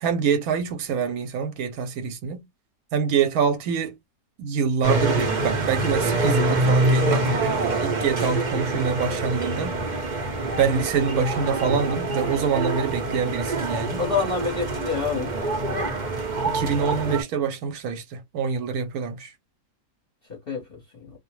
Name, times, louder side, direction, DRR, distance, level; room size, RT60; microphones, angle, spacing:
voice 1, 0.0-2.4 2.9-4.0 4.4-9.8 10.6-14.1 16.4-19.3, right 6 dB, 80° right, 1.1 m, -25 dB
sound 1, 4.8-17.2, right 2 dB, 45° right, 0.6 m, -25 dB
voice 2, 14.0-15.3 15.7-15.9 20.3-21.1, left 5 dB, 45° left, 0.9 m, -28 dB
2.5 x 2.1 x 2.9 m
omnidirectional pair, 1.5 m